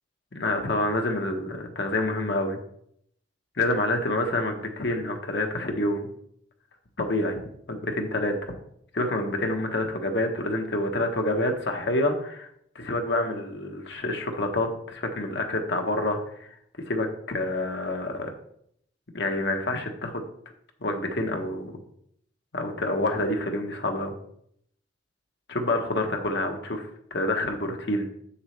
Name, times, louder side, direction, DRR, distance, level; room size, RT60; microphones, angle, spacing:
voice 1, 0.3-2.6 3.6-6.1 7.0-7.4 7.7-8.5 8.9-12.5 12.7-16.5 16.9-18.3 19.1-20.2 20.8-21.8 22.5-24.1 25.5-28.1, left 1 dB, 60° left, 4 dB, 1.1 m, -27 dB
7.4 x 7.0 x 3.3 m, 0.70 s
head